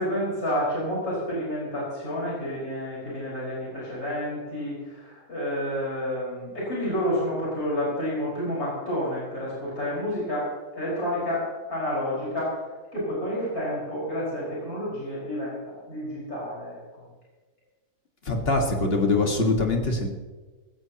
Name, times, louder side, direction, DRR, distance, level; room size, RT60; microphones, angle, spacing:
voice 1, 0.0-12.6 12.9-17.1, equal, 70° left, -7 dB, 5.8 m, -30 dB
voice 2, 18.3-20.1, left 2 dB, 40° left, 2 dB, 2.0 m, -23 dB
18.5 x 16.0 x 3.0 m, 1.3 s
omnidirectional pair, 1.6 m